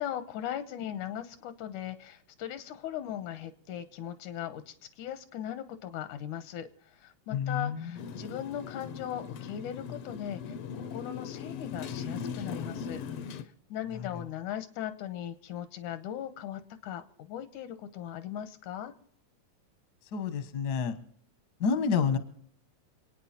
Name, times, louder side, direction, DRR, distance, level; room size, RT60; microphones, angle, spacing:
voice 1, 0.0-18.9, left 10 dB, 85° left, 11 dB, 2.5 m, -39 dB
voice 2, 7.3-7.9 13.9-14.1 20.1-21.0 21.6-22.2, left 6 dB, 50° left, 10 dB, 1.2 m, -29 dB
Motorcycle, 8.0-13.4, left 6 dB, 70° left, 1.5 m, -39 dB
27.5 x 9.3 x 4.3 m, 0.67 s
omnidirectional pair, 3.4 m